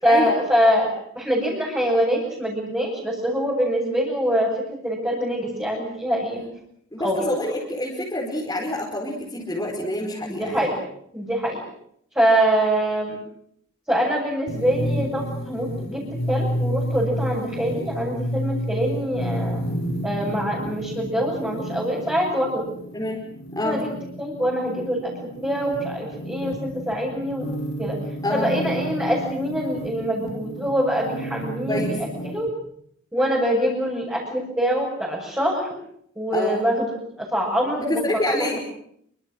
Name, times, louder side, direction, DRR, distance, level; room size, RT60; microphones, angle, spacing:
voice 1, 0.0-0.9 1.2-6.4 7.0-7.3 10.3-10.8 11.1-11.6 12.2-13.2 13.9-16.0 16.3-19.6 20.0-22.6 23.6-23.9 24.2-27.5 27.8-28.0 28.3-32.0 32.2-32.5 33.1-35.7 36.2-38.0, equal, 10° right, -5 dB, 7.0 m, -24 dB
voice 2, 6.9-10.7 22.9-23.2 23.5-23.8 28.2-28.5 31.7-32.0 36.3-36.6 37.8-38.6, left 1 dB, 15° left, -3 dB, 5.1 m, -27 dB
sound 1, 14.5-32.5, equal, 70° left, 5.2 m, -31 dB
27.5 x 25.0 x 6.5 m, 0.70 s
head